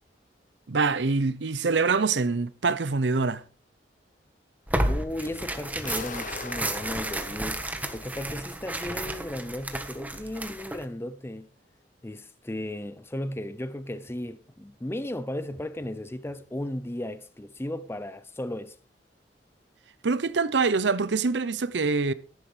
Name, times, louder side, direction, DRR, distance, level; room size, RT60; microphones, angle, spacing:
voice 1, 0.7-3.4 20.0-22.1, right 4 dB, 90° right, 0.7 m, -25 dB
Tearing, 4.7-10.8, right 1 dB, 10° right, 1.4 m, -32 dB
voice 2, 4.8-7.6 7.9-11.5 12.0-18.8, left 1 dB, 15° left, 0.6 m, -35 dB
sound 1, 5.8-8.7, left 4 dB, 50° left, 0.8 m, -42 dB
13.5 x 11.0 x 3.4 m
head